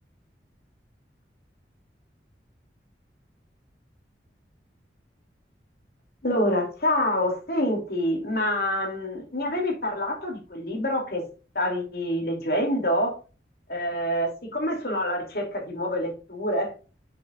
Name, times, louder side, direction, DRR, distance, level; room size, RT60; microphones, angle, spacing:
voice 1, 6.2-11.2 11.5-13.2 13.7-16.9, left 1 dB, 60° left, 2 dB, 2.9 m, -27 dB
7.4 x 7.0 x 2.5 m, 0.33 s
head